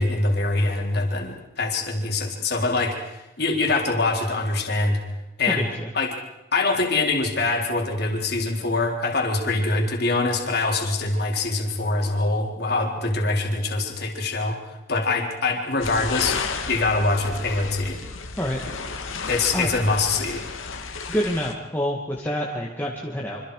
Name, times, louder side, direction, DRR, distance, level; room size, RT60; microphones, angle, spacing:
voice 1, 0.0-5.0 5.4-5.7 5.9-6.2 6.5-16.4 16.7-18.0 19.2-20.4, left 3 dB, 55° left, 1 dB, 3.9 m, -24 dB
voice 2, 5.5-5.9 18.4-18.7 19.5-19.8 21.1-23.4, equal, 10° left, -3 dB, 2.2 m, -27 dB
sound 1, 15.8-21.5, left 4 dB, 85° left, 2.3 m, -33 dB
27.0 x 26.0 x 5.0 m, 0.93 s
head